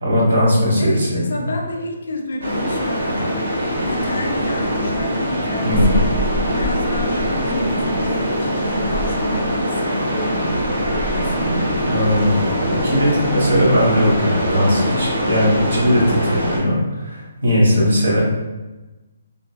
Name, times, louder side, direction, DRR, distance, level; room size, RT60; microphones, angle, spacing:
voice 1, 0.0-1.2 5.6-6.0 11.8-18.2, equal, 60° right, -5 dB, 1.2 m, -18 dB
voice 2, 0.8-6.1 6.5-7.2 7.4-10.6 11.1-11.7 17.7-18.2, left 1 dB, 65° left, 2 dB, 0.5 m, -29 dB
sound 1, 2.4-16.6, equal, 85° right, 1.1 m, -22 dB
3.7 x 2.2 x 2.3 m, 1.1 s
hypercardioid pair, 175°, 0 cm